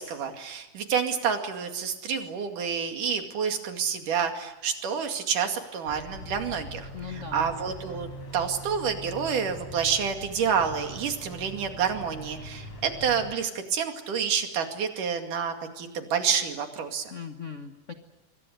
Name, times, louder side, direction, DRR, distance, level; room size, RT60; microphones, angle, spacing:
voice 1, 0.0-8.1 8.3-17.1, right 7 dB, 80° right, 5 dB, 3.9 m, -28 dB
sound 1, 5.9-13.3, equal, 50° left, 5.3 m, -42 dB
voice 2, 6.9-7.5 17.1-17.9, left 6 dB, 80° left, 6 dB, 0.6 m, -39 dB
26.0 x 24.0 x 8.0 m, 1.1 s
omnidirectional pair, 3.7 m